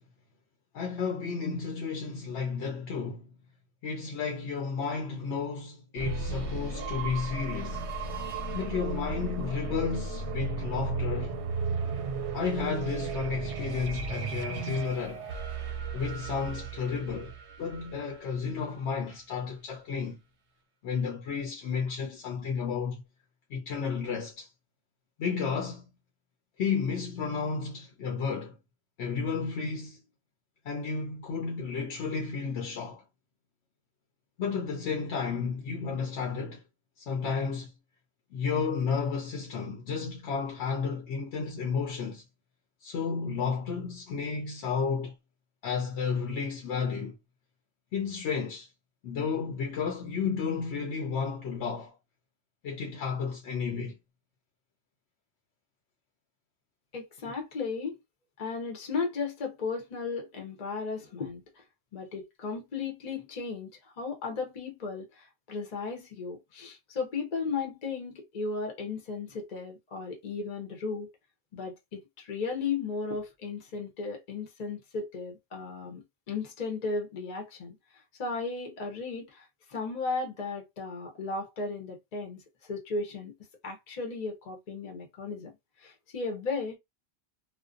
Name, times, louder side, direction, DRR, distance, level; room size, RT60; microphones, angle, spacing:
voice 1, 0.7-3.2 3.8-7.9 8.5-11.4 12.3-15.2 15.9-20.2 20.8-23.0 23.5-24.5 25.2-25.8 26.6-28.6 29.0-30.0 30.7-33.0 34.4-36.6 37.0-37.7 38.3-42.2 42.8-45.1 45.6-47.1 47.9-48.7 49.0-51.9 52.6-54.0, left 5 dB, 80° left, 0.9 m, -32 dB
sound 1, 6.0-18.7, right 4 dB, 85° right, 0.9 m, -35 dB
voice 2, 56.9-58.0 58.4-61.6 61.9-71.1 71.5-77.8 78.2-83.3 83.6-85.5 85.8-86.8, left 4 dB, 45° left, 0.7 m, -35 dB
2.3 x 2.1 x 2.5 m
omnidirectional pair, 1.1 m